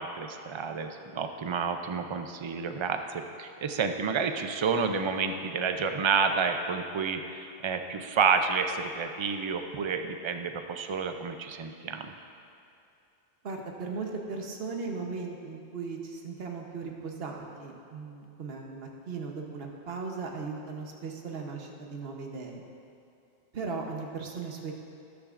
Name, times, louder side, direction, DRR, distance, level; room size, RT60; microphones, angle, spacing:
voice 1, 0.0-12.1, right 5 dB, 45° right, 6 dB, 0.4 m, -30 dB
voice 2, 13.4-22.6 23.5-24.7, right 4 dB, 65° right, 2 dB, 1.2 m, -37 dB
13.0 x 10.5 x 2.5 m, 2.7 s
omnidirectional pair, 1.1 m